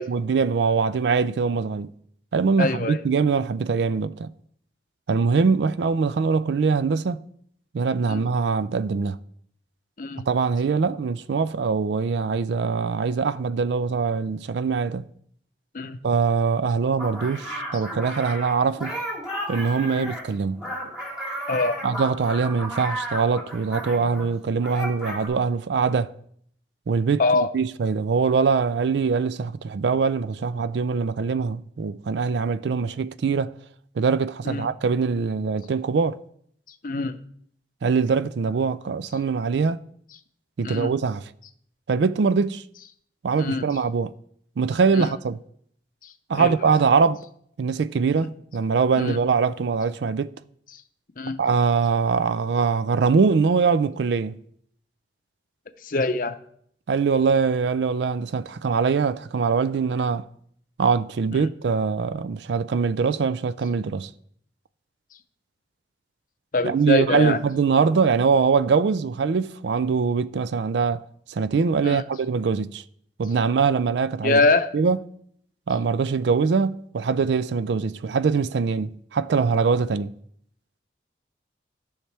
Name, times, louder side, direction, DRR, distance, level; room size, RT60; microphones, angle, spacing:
voice 1, 0.0-1.9 2.3-4.3 5.1-7.2 7.7-9.2 10.3-15.0 16.0-19.0 19.5-20.7 21.8-26.1 26.9-33.5 34.0-36.2 37.8-39.8 40.6-41.3 41.9-42.6 43.2-44.1 44.6-45.4 46.3-47.2 47.6-50.3 51.4-54.4 56.9-60.2 60.8-64.1 66.6-71.0 71.3-72.8 73.2-74.5 74.7-75.0 75.7-80.1, right 5 dB, 75° right, 0.4 m, -23 dB
voice 2, 2.6-3.0 8.1-8.3 10.0-10.2 15.7-16.0 19.8-20.1 21.5-21.8 27.2-27.5 34.4-34.7 36.8-37.2 40.6-40.9 43.4-43.6 44.9-45.1 46.0-46.7 49.0-49.2 50.7-50.8 51.2-51.4 55.8-56.4 61.3-61.5 66.5-67.4 71.8-72.0 74.2-74.7, left 3 dB, 50° left, 0.6 m, -24 dB
sound 1, 17.0-24.3 24.6-25.3, right 1 dB, 5° right, 2.5 m, -33 dB
14.0 x 5.7 x 3.3 m
head